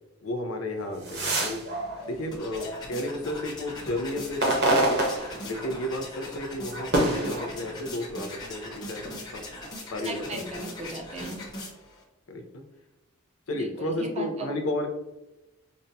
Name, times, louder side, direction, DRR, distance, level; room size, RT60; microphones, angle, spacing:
voice 1, 0.2-1.6 2.1-5.0 5.4-9.4 9.9-10.2 12.3-12.6 13.5-14.9, left 1 dB, 75° left, 5 dB, 0.6 m, -32 dB
sound 1, 0.8-3.2 3.7-6.0 6.3-8.2 8.8-9.8, right 1 dB, 50° right, 0.9 m, -28 dB
sound 2, 2.0-12.0, left 2 dB, 20° left, 0.9 m, -41 dB
voice 2, 10.0-11.5 13.5-14.5, right 2 dB, 30° right, 1 dB, 0.6 m, -37 dB
5.2 x 2.2 x 2.7 m, 1.0 s
head